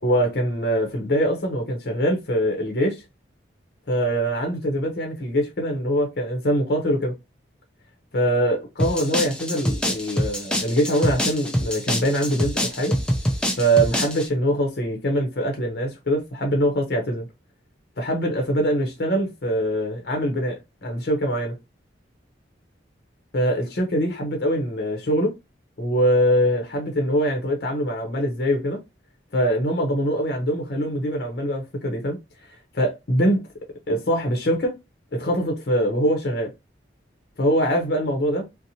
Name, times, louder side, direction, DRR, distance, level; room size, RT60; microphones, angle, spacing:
voice 1, 0.0-3.0 3.9-7.1 8.1-13.0 13.6-17.3 18.0-21.5 23.3-25.3 25.8-28.8 29.3-32.2 32.7-33.4 33.9-34.8 35.1-36.5 37.4-38.5, equal, 55° left, 0.6 m, -23 dB
sound 1, 8.8-14.3, equal, 5° left, 0.3 m, -25 dB
2.7 x 2.0 x 2.7 m
head